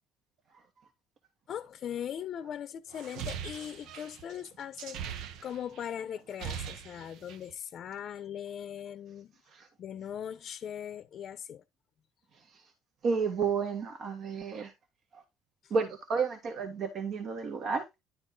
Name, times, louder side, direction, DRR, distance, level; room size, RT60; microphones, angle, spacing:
voice 1, 1.5-9.3 9.8-11.6 15.6-15.7, left 9 dB, 55° left, 0.7 m, -40 dB
sound 1, 2.9-5.9 6.2-7.5, right 8 dB, 75° right, 0.8 m, -41 dB
voice 2, 12.3-12.7 13.0-14.7 15.1-15.2 15.7-18.0, right 5 dB, 55° right, 1.7 m, -32 dB
11.0 x 3.8 x 3.9 m
cardioid pair, 100°, 0 cm